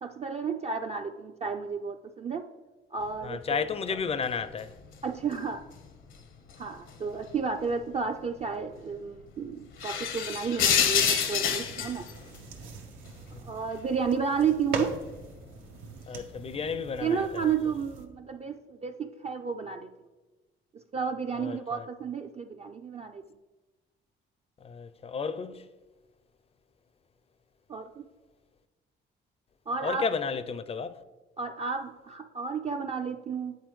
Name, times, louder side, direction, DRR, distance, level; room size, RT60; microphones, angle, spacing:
voice 1, 0.0-2.5 2.9-3.7 5.0-5.6 6.6-12.1 13.4-14.9 17.0-19.9 20.7-23.2 27.7-28.1 29.7-30.1 31.4-33.6, right 6 dB, 35° right, 0.3 m, -32 dB
sound 1, 3.1-3.6 4.1-6.2 6.5-7.5 7.8-7.9 8.3-8.4 8.9-9.0 9.6-13.1 13.5-15.5 16.2-16.4 16.8-17.2, left 8 dB, 75° left, 0.7 m, -29 dB
voice 2, 3.2-4.7 13.3-13.4 16.1-17.5 21.4-21.9 24.6-25.7 29.8-31.0, left 5 dB, 30° left, 0.4 m, -33 dB
sound 2, 11.6-18.1, right 3 dB, 85° right, 0.8 m, -41 dB
9.3 x 4.0 x 3.1 m
cardioid pair, 90°, 20 cm